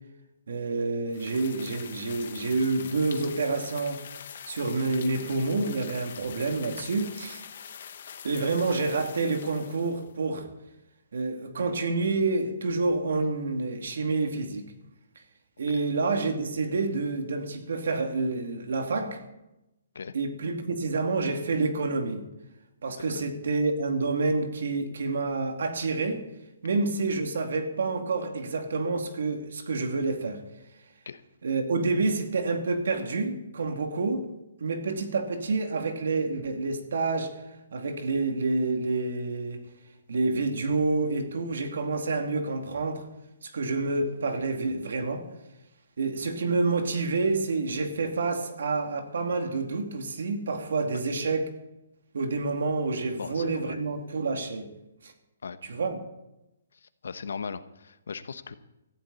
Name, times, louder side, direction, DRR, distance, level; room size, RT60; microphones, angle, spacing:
voice 1, 0.5-4.1 4.5-7.4 8.2-10.5 11.1-14.7 15.6-19.2 20.1-22.2 22.8-26.3 26.6-30.4 31.4-34.3 34.6-37.4 37.7-39.6 40.1-43.0 43.4-45.2 46.0-51.5 52.1-54.7 55.0-55.1 55.6-56.0, right 3 dB, 60° right, 4 dB, 2.6 m, -28 dB
sound 1, 1.1-10.1, left 8 dB, 40° left, 1.0 m, -44 dB
voice 2, 53.2-53.8 55.4-55.6 56.7-58.5, left 5 dB, 75° left, 11 dB, 1.1 m, -38 dB
17.5 x 14.5 x 4.2 m, 0.92 s
hypercardioid pair, 180°, 0 cm